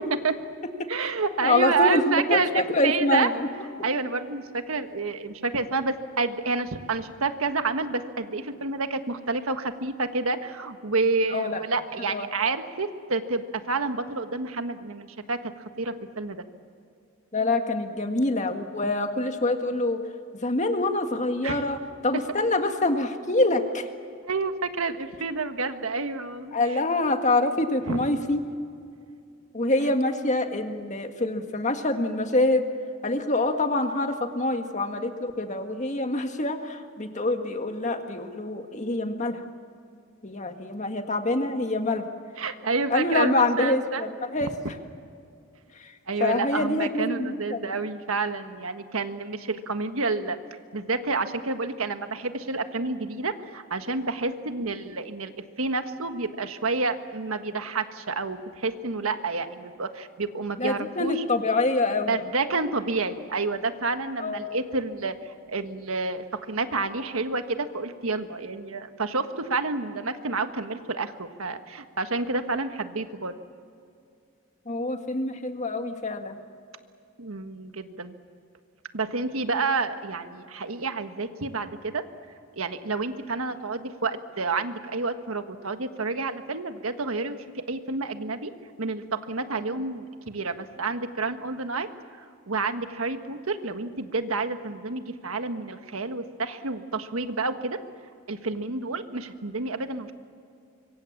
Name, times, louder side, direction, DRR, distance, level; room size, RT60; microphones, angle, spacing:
voice 1, 0.9-3.3 3.8-15.5 15.8-16.4 21.4-21.6 24.3-26.6 27.9-28.0 29.8-29.9 42.4-44.0 46.1-50.4 50.7-55.3 55.6-61.2 62.1-65.1 65.5-73.3 77.2-78.1 78.9-82.0 82.6-88.5 88.8-91.9 92.2-97.8 98.3-100.1, right 3 dB, 90° right, 8 dB, 1.5 m, -29 dB
voice 2, 1.4-3.5 11.3-11.6 12.1-12.3 17.3-20.0 20.4-23.9 26.5-28.4 29.5-32.7 33.0-39.4 40.2-42.0 42.9-44.5 45.8-47.6 60.6-62.2 64.2-64.4 74.7-76.4, left 2 dB, 35° left, 5 dB, 1.8 m, -25 dB
25.5 x 23.5 x 7.3 m, 2.4 s
head